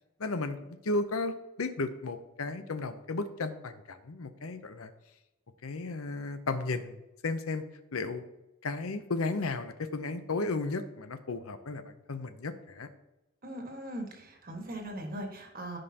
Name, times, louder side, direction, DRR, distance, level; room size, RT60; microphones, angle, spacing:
voice 1, 0.2-4.9 5.6-7.0 7.2-7.6 7.9-8.2 8.6-12.9, left 3 dB, 80° left, 10 dB, 0.7 m, -34 dB
voice 2, 13.4-15.8, right 1 dB, 40° right, 2 dB, 1.6 m, -40 dB
15.0 x 5.4 x 2.9 m, 0.98 s
head